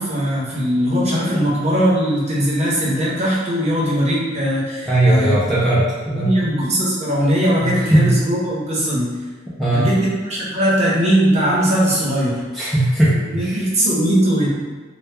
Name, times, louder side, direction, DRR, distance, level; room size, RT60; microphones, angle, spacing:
voice 1, 0.0-5.3 6.0-9.1 9.7-12.4 13.3-14.5, equal, 35° right, -7 dB, 0.8 m, -19 dB
voice 2, 4.9-6.4 7.6-8.1 9.6-9.9 12.5-13.7, right 1 dB, ahead, -10 dB, 0.4 m, -18 dB
2.2 x 2.1 x 3.2 m, 1.4 s
head